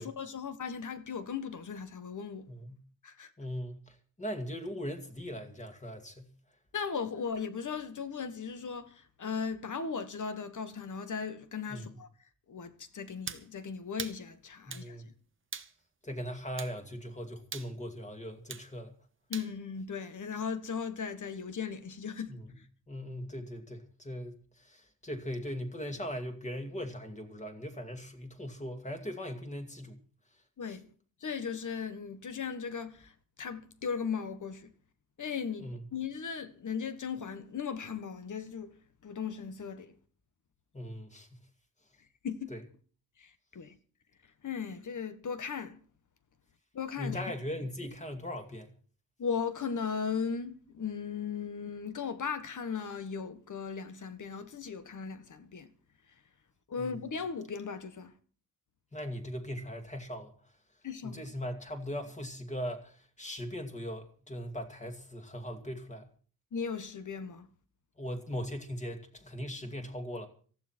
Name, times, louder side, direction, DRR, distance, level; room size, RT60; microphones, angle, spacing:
voice 1, 0.0-2.5 3.0-3.3 6.7-12.1 12.5-15.0 19.3-22.6 30.6-30.9 31.2-33.1 33.4-34.7 35.2-38.7 39.0-39.9 42.2-42.5 43.2-43.8 44.4-45.8 46.7-47.3 49.2-55.7 56.7-58.1 60.8-61.2 66.5-67.5, left 6 dB, 60° left, 1.5 m, -37 dB
voice 2, 2.5-2.8 3.4-6.3 11.7-12.0 14.7-15.1 16.0-18.9 22.3-22.4 22.9-30.0 30.7-30.8 35.6-35.8 40.7-41.4 42.5-42.6 47.0-48.8 56.8-57.0 58.9-60.3 61.0-66.1 68.0-70.3, equal, 20° left, 2.4 m, -39 dB
sound 1, 13.3-13.5 14.0-14.2 14.7-14.9 15.5-15.7 16.6-16.8 17.5-17.7 18.5-18.7 19.3-19.5, right 5 dB, 35° right, 1.1 m, -40 dB
18.5 x 14.5 x 4.5 m
wide cardioid pair, 175°, 35 cm